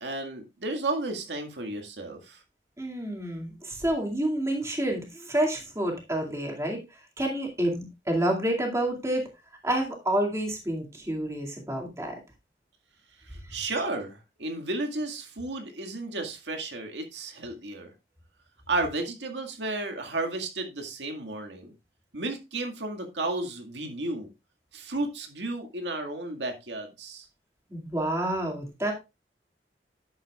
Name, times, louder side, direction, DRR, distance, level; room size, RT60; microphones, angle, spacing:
voice 1, 0.0-2.4 13.2-17.9 18.7-21.7 22.1-24.3 24.7-27.3, right 2 dB, 90° right, 4 dB, 2.0 m, -33 dB
voice 2, 2.8-9.3 9.6-12.2 13.5-13.6 27.7-28.9, right 1 dB, 15° right, 1 dB, 2.3 m, -29 dB
11.0 x 7.8 x 2.4 m, 0.25 s
head